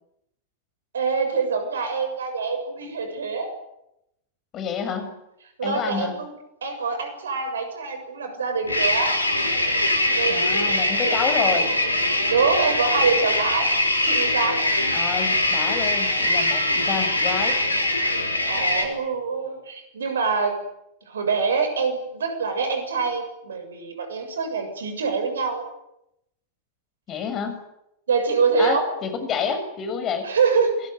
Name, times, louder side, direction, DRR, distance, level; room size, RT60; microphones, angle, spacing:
voice 1, 0.9-3.5 5.6-6.3 6.6-9.1 10.1-11.7 12.3-13.7 14.0-14.6 18.1-20.5 21.1-25.7 27.1-27.2 28.1-28.8 30.2-30.8, right 5 dB, 65° right, 7 dB, 7.3 m, -25 dB
voice 2, 4.5-5.1 5.6-6.1 10.3-11.7 14.9-17.6 27.1-27.6 28.6-30.3, left 6 dB, 30° left, 9 dB, 6.5 m, -28 dB
sound 1, 8.6-18.8, left 1 dB, 80° left, 5.3 m, -22 dB
27.5 x 21.0 x 9.6 m, 0.82 s
figure-of-eight pair, 90°, 0 cm